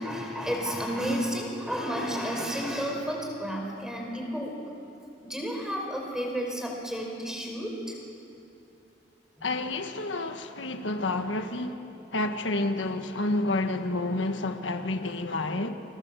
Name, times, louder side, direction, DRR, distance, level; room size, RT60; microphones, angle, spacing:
voice 1, 0.0-4.5 5.2-7.9, equal, 5° right, 5.0 m, -31 dB
voice 2, 9.4-11.8 12.1-15.8, left 2 dB, 90° left, 1.5 m, -29 dB
29.5 x 24.5 x 7.6 m
head